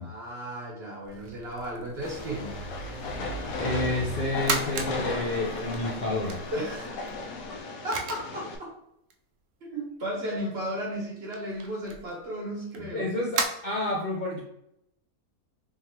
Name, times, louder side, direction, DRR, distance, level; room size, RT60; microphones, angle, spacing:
voice 1, 0.0-2.6 6.5-6.9 7.8-8.7 9.6-13.1, equal, 50° right, -3 dB, 1.3 m, -34 dB
sound 1, 1.0-7.6, right 2 dB, 80° right, 1.1 m, -42 dB
Train, 2.0-8.6, left 3 dB, 80° left, 1.1 m, -36 dB
voice 2, 3.6-6.4 12.9-14.4, left 2 dB, 50° left, -4 dB, 0.6 m, -29 dB
sound 2, 4.2-5.0 5.3-6.9 7.6-7.7 7.9-8.4 9.1-9.2 10.5-10.6 10.8-10.9 11.2-13.5, right 5 dB, 65° right, 0.7 m, -33 dB
3.6 x 3.2 x 2.9 m, 0.79 s
omnidirectional pair, 1.5 m